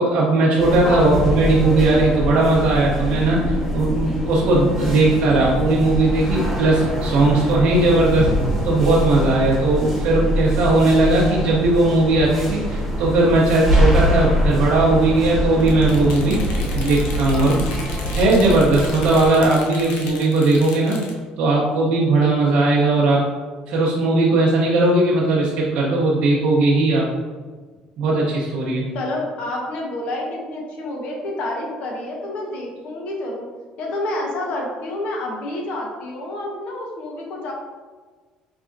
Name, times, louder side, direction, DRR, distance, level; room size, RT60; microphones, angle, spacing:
voice 1, 0.0-8.3 8.6-21.0 21.4-23.2 23.7-27.1 28.0-28.9, right 2 dB, 70° right, -6 dB, 0.8 m, -18 dB
sound 1, 0.6-19.2, equal, 5° left, 1.5 m, -24 dB
sound 2, 15.6-21.1, left 3 dB, 90° left, 0.7 m, -35 dB
voice 2, 28.9-33.5 33.8-37.5, left 1 dB, 65° left, 0 dB, 1.1 m, -28 dB
4.7 x 3.4 x 2.5 m, 1.4 s
cardioid pair, 105°, 2 cm